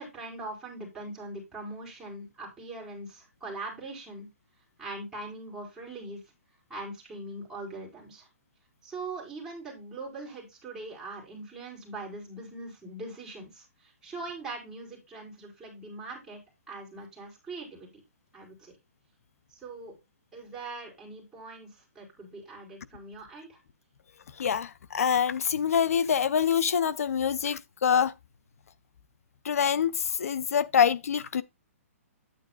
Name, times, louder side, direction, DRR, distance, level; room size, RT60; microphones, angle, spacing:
voice 1, 0.0-4.3 4.8-6.2 6.7-8.3 8.8-16.4 16.7-17.9 18.3-18.7 19.6-20.0 20.3-23.6, right 2 dB, 5° right, 4.7 m, -41 dB
voice 2, 24.4-28.1 29.4-31.4, left 8 dB, 75° left, 0.6 m, -25 dB
9.3 x 9.1 x 2.4 m
hypercardioid pair, 155°, 8 cm